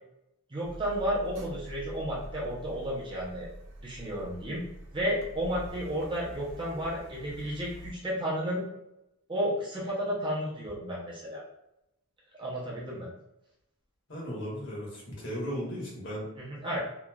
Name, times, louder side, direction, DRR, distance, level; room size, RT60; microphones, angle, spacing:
voice 1, 0.5-3.5 3.8-4.6 4.9-8.6 9.3-11.4 12.4-13.1 16.4-16.8, equal, 20° right, -6 dB, 0.7 m, -32 dB
Car, 0.6-7.9, equal, 55° right, 0.5 m, -45 dB
voice 2, 14.1-16.2, equal, 55° left, -5 dB, 1.1 m, -36 dB
2.9 x 2.4 x 2.3 m, 0.86 s
head